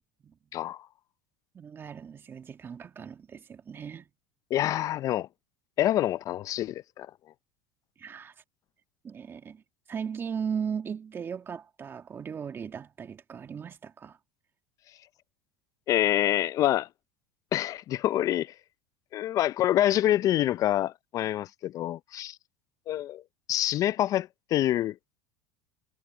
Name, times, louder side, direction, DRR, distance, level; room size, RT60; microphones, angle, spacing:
voice 1, 0.5-0.9 4.5-5.3 5.8-7.1 15.9-16.9 17.5-18.5 19.1-22.4 22.9-23.2 23.5-25.0, left 13 dB, 45° left, 0.5 m, -26 dB
voice 2, 1.5-4.1 8.0-8.3 9.0-9.6 9.9-14.2, right 7 dB, 30° right, 2.2 m, -37 dB
supercardioid pair, 105°, 8 cm